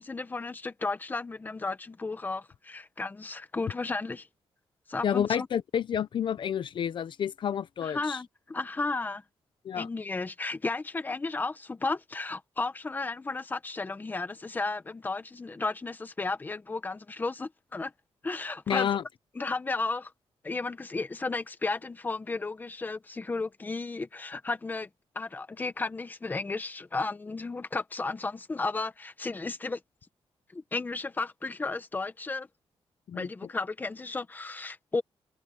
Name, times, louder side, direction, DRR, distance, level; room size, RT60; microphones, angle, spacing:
voice 1, 0.0-4.3 4.9-5.5 7.8-9.2 9.7-17.9 18.2-19.0 19.3-20.1 20.4-24.9 25.1-29.8 30.5-32.5 33.1-35.0, left 3 dB, 20° left, 1.0 m, -33 dB
voice 2, 5.0-8.2 9.6-9.9 18.7-19.0 33.1-33.3, left 8 dB, 55° left, 0.7 m, -29 dB
wide cardioid pair, 175°, 10 cm